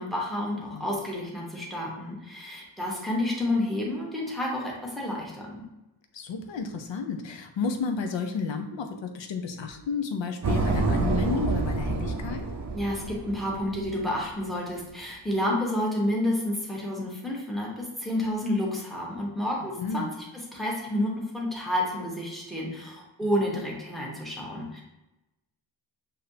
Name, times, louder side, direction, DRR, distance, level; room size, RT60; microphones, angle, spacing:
voice 1, 0.0-5.6 12.7-20.1 20.3-24.8, left 1 dB, ahead, -3 dB, 0.9 m, -30 dB
voice 2, 6.1-12.5 19.8-20.2 23.5-23.6, left 5 dB, 90° left, 5 dB, 0.6 m, -32 dB
sound 1, 10.4-14.2, right 3 dB, 40° right, 0.5 m, -28 dB
6.7 x 2.7 x 2.7 m, 0.97 s
wide cardioid pair, 165°, 43 cm